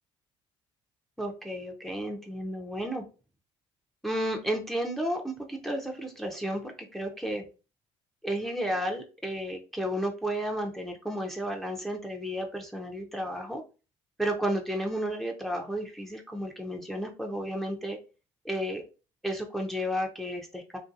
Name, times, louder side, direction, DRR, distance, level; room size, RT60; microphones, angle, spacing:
voice 1, 1.2-3.0 4.0-7.5 8.2-13.6 14.2-18.0 18.4-18.8 19.2-20.8, equal, ahead, 2 dB, 0.5 m, -32 dB
2.6 x 2.5 x 2.5 m, 0.33 s
supercardioid pair, 65°, 14 cm